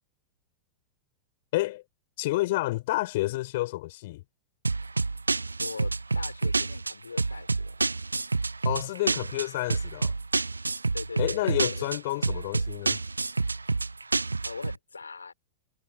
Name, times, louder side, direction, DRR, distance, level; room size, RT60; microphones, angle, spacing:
voice 1, 1.5-1.8 2.2-4.2 8.6-10.1 11.2-13.0, left 18 dB, 50° left, 5.1 m, -29 dB
sound 1, 4.6-14.7, right 3 dB, 80° right, 0.6 m, -28 dB
voice 2, 5.6-7.8 10.9-11.9 14.4-15.3, left 4 dB, 75° left, 4.7 m, -41 dB
figure-of-eight pair, 90°, 0 cm